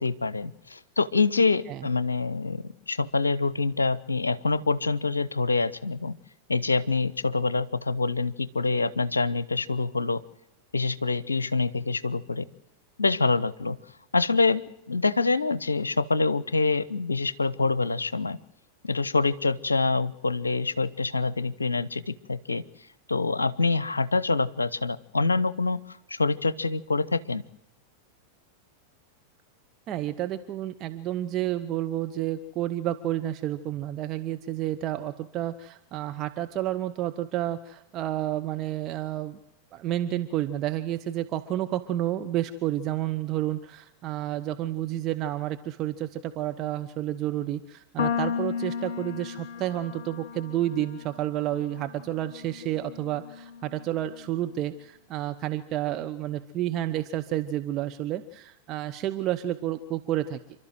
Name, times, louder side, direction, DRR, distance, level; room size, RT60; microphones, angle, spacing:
voice 1, 0.0-6.1 6.5-10.2 10.7-12.5 13.0-13.8 14.1-14.6 14.9-18.4 18.8-22.6 23.1-25.8 26.1-27.4, left 3 dB, 80° left, 17 dB, 0.7 m, -26 dB
voice 2, 29.9-39.4 39.7-60.4, right 13 dB, 35° right, 8 dB, 0.9 m, -30 dB
sound 1, 48.0-54.3, left 7 dB, 55° left, 1.5 m, -35 dB
28.0 x 12.5 x 7.9 m, 0.87 s
figure-of-eight pair, 90°, 0 cm